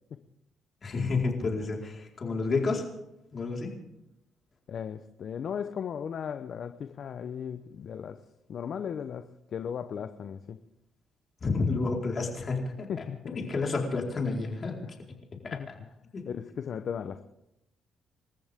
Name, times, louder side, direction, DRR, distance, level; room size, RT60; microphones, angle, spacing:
voice 1, 0.8-2.9 3.3-3.8 11.4-12.9 13.3-14.8 15.4-15.7 16.1-16.2, left 3 dB, 40° left, 0 dB, 4.5 m, -30 dB
voice 2, 4.7-8.2 8.5-10.6 12.9-13.4 14.8-14.9 15.5-15.9 16.2-17.2, left 7 dB, 60° left, 10 dB, 0.8 m, -36 dB
28.0 x 14.0 x 3.7 m, 0.84 s
cardioid pair, 90°, 0 cm